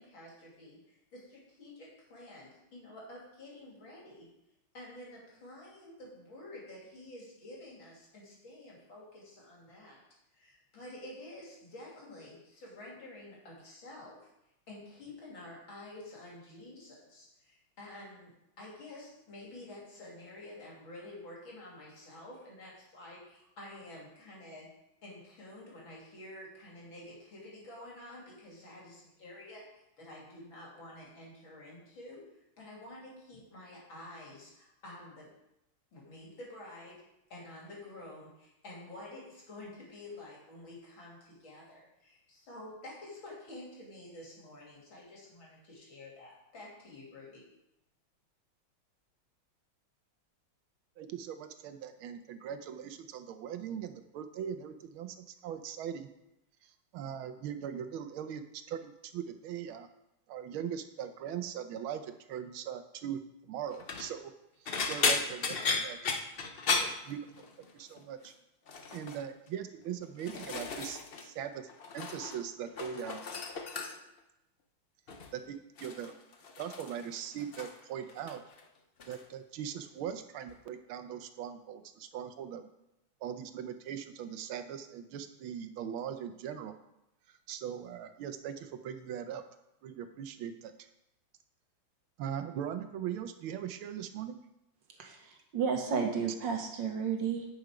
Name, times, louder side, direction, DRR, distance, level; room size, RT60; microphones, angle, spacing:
voice 1, 0.0-4.3 4.7-10.0 10.3-14.3 14.7-24.7 25.0-29.6 30.0-32.3 32.6-35.3 35.9-37.0 37.3-47.4, left 1 dB, 70° left, -4 dB, 3.6 m, -49 dB
voice 2, 51.0-56.1 56.6-59.9 60.3-64.3 64.6-66.0 66.8-67.2 67.7-68.3 68.9-73.2 75.3-76.1 76.6-78.4 79.1-82.7 83.2-86.7 87.5-89.4 89.8-90.9 92.2-94.4, right 9 dB, 90° right, 9 dB, 1.6 m, -40 dB
sound 1, 63.7-64.1 64.7-67.7 68.0-68.3 68.7-69.2 69.9-71.3 71.5-72.4 72.7-74.2 75.1-75.4 75.8-77.8 78.1-78.6 79.0-79.2 80.5-80.6, left 4 dB, 90° left, 0.5 m, -35 dB
voice 3, 95.0-97.5, right 6 dB, 65° right, 3 dB, 1.8 m, -32 dB
9.4 x 6.2 x 5.0 m, 0.86 s
omnidirectional pair, 2.2 m